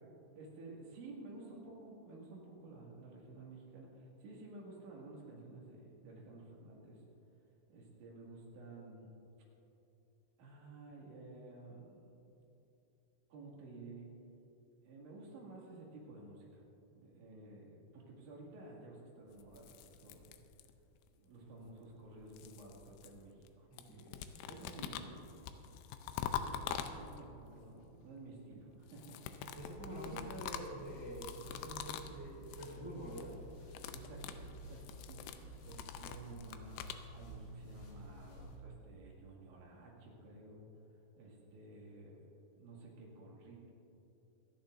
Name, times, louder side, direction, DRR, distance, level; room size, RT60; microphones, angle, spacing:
voice 1, 0.3-7.0 7.7-9.1 10.4-12.1 13.3-14.1 14.8-16.6 16.9-20.3 21.2-25.5 26.1-26.6 26.9-29.5 29.9-30.3 33.9-35.3 35.7-36.8 37.1-40.7 41.2-43.7, right 2 dB, 70° right, -3 dB, 4.3 m, -53 dB
sound 1, 19.4-21.0 21.9-23.5 23.8-27.4 28.8-32.2 32.4-32.8 33.0-33.3 33.6-37.0, left 9 dB, 80° left, 2.8 m, -45 dB
voice 2, 23.7-24.0 29.5-33.4, equal, 20° right, -5 dB, 0.6 m, -47 dB
sound 2, 29.6-38.6, equal, 60° left, 3.6 m, -52 dB
26.0 x 10.5 x 2.6 m, 2.9 s
omnidirectional pair, 5.6 m